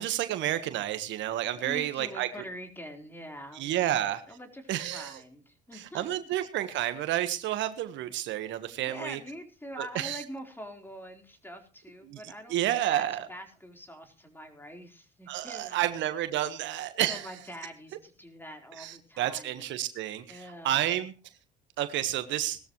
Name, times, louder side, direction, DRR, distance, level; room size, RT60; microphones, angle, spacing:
voice 1, 0.0-2.3 3.5-4.2 4.7-5.2 5.7-9.2 9.8-10.2 12.1-13.3 15.3-17.3 18.8-21.1 21.8-22.6, right 13 dB, 70° right, 10 dB, 1.5 m, -30 dB
voice 2, 1.5-4.0 4.3-6.0 8.8-15.9 17.1-19.7 20.3-21.0, equal, 10° left, 4 dB, 4.3 m, -45 dB
19.5 x 13.5 x 3.2 m, 0.34 s
supercardioid pair, 70°, 20 cm